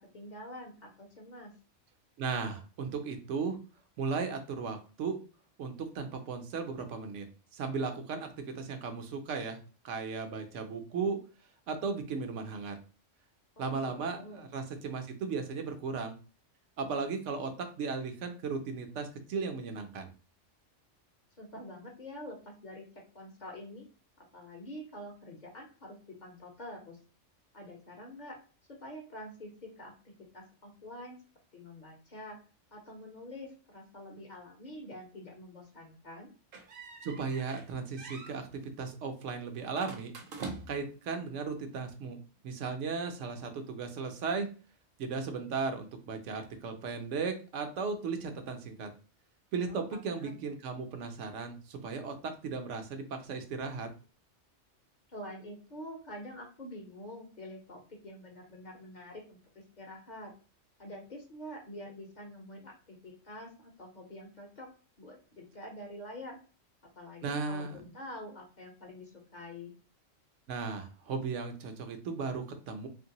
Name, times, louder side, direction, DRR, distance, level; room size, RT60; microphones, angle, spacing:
voice 1, 0.1-1.5 13.6-14.5 21.4-22.8 23.1-23.8 24.2-27.0 27.5-28.4 28.8-31.2 31.5-32.4 32.7-36.3 49.7-50.4 55.1-60.3 60.8-64.7 65.0-66.4 67.0-69.7, left 1 dB, 45° left, 0 dB, 0.7 m, -46 dB
voice 2, 2.2-3.6 4.0-5.2 5.6-7.2 7.5-9.6 9.8-11.2 11.7-12.8 13.6-16.2 16.8-20.1 37.0-38.5 38.8-40.1 40.7-42.2 42.4-44.5 45.0-48.9 49.5-53.9 67.2-67.8 70.5-72.9, right 5 dB, 80° right, 6 dB, 0.9 m, -36 dB
sound 1, 36.5-37.7 38.0-38.4 39.7-40.9, right 3 dB, 55° right, 0.7 m, -44 dB
3.0 x 2.6 x 2.8 m, 0.36 s
omnidirectional pair, 1.3 m